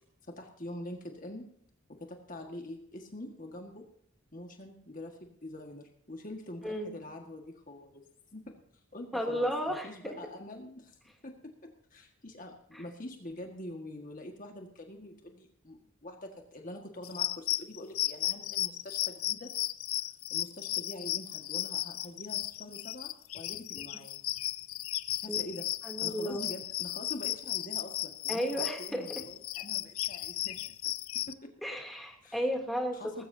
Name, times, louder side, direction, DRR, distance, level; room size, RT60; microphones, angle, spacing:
voice 1, 0.2-1.5 1.9-3.9 4.3-8.1 8.3-11.0 11.2-19.6 20.3-24.2 25.2-25.7 26.0-30.6 31.3-31.5 32.2-32.4 32.9-33.2, left 1 dB, 40° left, 3 dB, 1.7 m, -45 dB
voice 2, 9.1-10.1 25.3-25.4 25.8-26.4 28.3-29.0 31.6-33.0, equal, ahead, 0 dB, 2.8 m, -33 dB
sound 1, 17.0-31.3, left 15 dB, 80° left, 0.6 m, -35 dB
19.5 x 16.0 x 2.8 m, 0.66 s
head